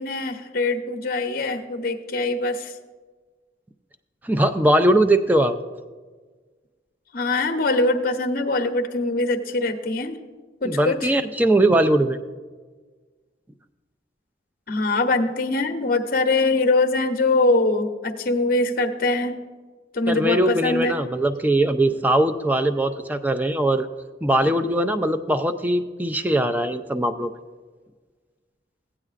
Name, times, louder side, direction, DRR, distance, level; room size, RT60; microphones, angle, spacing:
voice 1, 0.0-2.7 7.1-10.2 10.6-11.1 14.7-19.4 19.9-21.0, left 2 dB, 50° left, 7 dB, 0.7 m, -23 dB
voice 2, 4.2-5.6 10.7-12.2 20.1-23.9 24.2-27.3, right 1 dB, 10° right, 10 dB, 0.4 m, -20 dB
16.0 x 8.7 x 2.4 m, 1.4 s
head